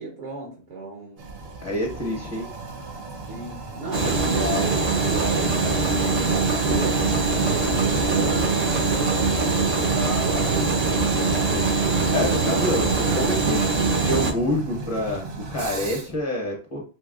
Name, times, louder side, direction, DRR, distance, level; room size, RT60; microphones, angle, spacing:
voice 1, 0.0-1.3 3.3-7.0 7.5-10.6 12.4-12.6 13.0-13.6, right 2 dB, 80° right, 1.1 m, -34 dB
Toilet flush, 1.2-16.2, right 3 dB, 65° right, 0.9 m, -37 dB
voice 2, 1.6-2.5 3.9-4.0 11.5-11.7 12.1-13.7 14.0-16.8, left 1 dB, 35° left, 0.7 m, -27 dB
sound 1, 3.9-14.3, right 4 dB, 50° right, 0.5 m, -22 dB
Wind instrument woodwind instrument, 7.3-13.8, left 2 dB, 75° left, 0.8 m, -40 dB
3.2 x 2.9 x 2.3 m
omnidirectional pair, 1.2 m